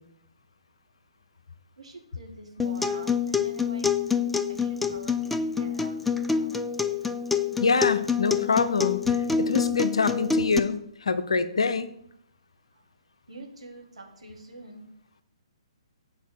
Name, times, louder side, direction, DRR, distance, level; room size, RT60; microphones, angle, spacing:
voice 1, 1.8-4.0 4.5-6.0 6.3-6.6 12.7-12.8 13.3-14.8, right 2 dB, 70° right, 2 dB, 1.9 m, -46 dB
Acoustic guitar, 2.6-10.6, left 6 dB, 5° left, 0.3 m, -26 dB
voice 2, 7.6-11.9, left 4 dB, 65° left, 12 dB, 0.7 m, -25 dB
8.1 x 4.6 x 6.4 m, 0.72 s
figure-of-eight pair, 125°, 3 cm